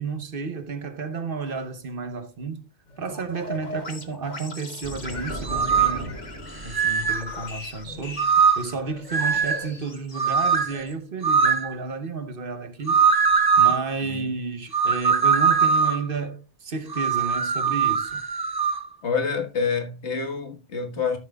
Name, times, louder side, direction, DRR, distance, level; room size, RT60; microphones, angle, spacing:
voice 1, 0.0-2.6 3.0-6.2 6.6-13.2 13.6-18.2, right 4 dB, 55° right, 1.0 m, -32 dB
sound 1, 2.9-10.9, left 3 dB, 40° left, 1.3 m, -40 dB
sound 2, 4.8-8.6, right 1 dB, 85° right, 3.9 m, -38 dB
sound 3, 5.4-6.0 6.7-7.2 8.2-8.7 9.1-9.6 10.2-10.7 11.2-11.7 12.9-13.8 14.7-16.1 16.9-18.8, right 6 dB, 30° right, 0.5 m, -21 dB
voice 2, 19.0-21.2, left 5 dB, 75° left, 1.8 m, -27 dB
13.0 x 7.2 x 2.3 m
omnidirectional pair, 1.2 m